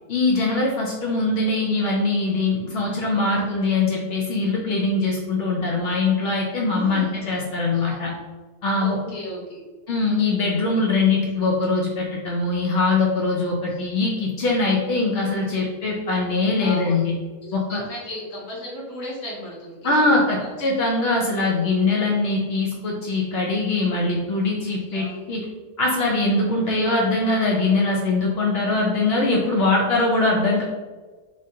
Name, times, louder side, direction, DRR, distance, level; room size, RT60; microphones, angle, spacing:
voice 1, 0.1-8.1 8.6-9.0 9.9-17.1 17.5-17.8 19.8-25.5 25.8-30.6, left 3 dB, 90° left, -2 dB, 0.5 m, -22 dB
voice 2, 6.7-7.1 7.7-8.1 8.8-9.6 13.7-13.8 16.6-17.0 17.4-20.5 21.3-21.7 24.9-25.2, left 1 dB, 55° left, -7 dB, 1.6 m, -36 dB
3.5 x 2.6 x 2.7 m, 1.3 s
omnidirectional pair, 1.6 m